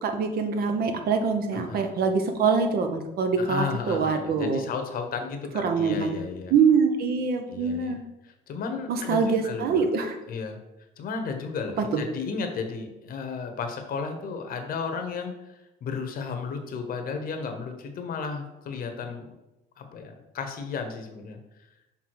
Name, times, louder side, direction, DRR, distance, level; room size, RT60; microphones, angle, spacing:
voice 1, 0.0-4.7 5.5-6.2 6.5-8.0 8.9-10.2 11.8-12.0, right 5 dB, 65° right, 6 dB, 0.9 m, -24 dB
voice 2, 1.5-1.9 3.4-6.5 7.5-8.0 8.5-9.8 10.3-10.6 11.0-19.3 19.8-21.4, left 5 dB, 60° left, 5 dB, 1.0 m, -33 dB
6.1 x 3.5 x 4.7 m, 0.96 s
cardioid pair, 110°, 17 cm